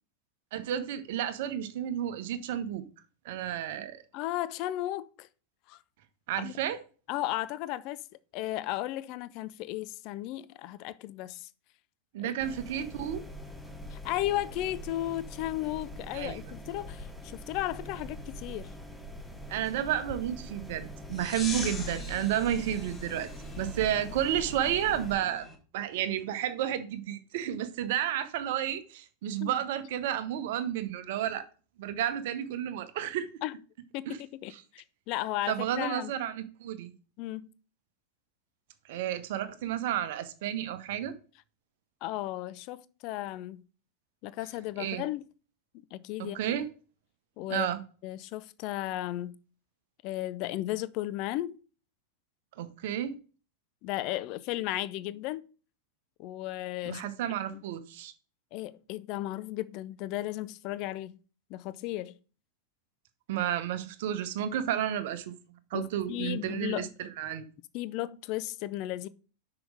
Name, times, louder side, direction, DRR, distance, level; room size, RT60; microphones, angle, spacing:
voice 1, 0.5-2.9 3.2-4.0 6.3-6.8 12.1-13.3 16.1-16.4 19.5-23.3 23.6-25.5 25.7-31.5 31.8-33.3 34.1-34.2 34.5-34.6 35.5-36.9 38.9-41.2 44.8-45.0 46.2-46.7 47.5-47.8 52.6-53.2 56.9-58.1 63.3-65.3 65.7-67.4, right 10 dB, 50° right, 0.8 m, -31 dB
voice 2, 4.1-5.3 5.7-5.8 6.4-6.5 7.1-8.0 8.3-11.5 12.2-12.3 13.9-18.7 29.4-29.6 33.4-33.5 33.9-36.1 37.2-37.5 42.0-43.6 44.2-45.3 45.9-46.5 47.4-47.7 48.0-49.3 50.0-51.6 53.8-55.4 56.2-57.0 57.5-57.6 58.5-61.2 61.5-62.1 65.7-66.9 67.7-69.1, left 15 dB, 40° left, 0.4 m, -35 dB
sound 1, 12.4-25.2, equal, 5° left, 1.0 m, -44 dB
sound 2, 21.1-25.6, left 3 dB, 20° left, 1.4 m, -41 dB
6.1 x 4.8 x 4.9 m
figure-of-eight pair, 90°, 0 cm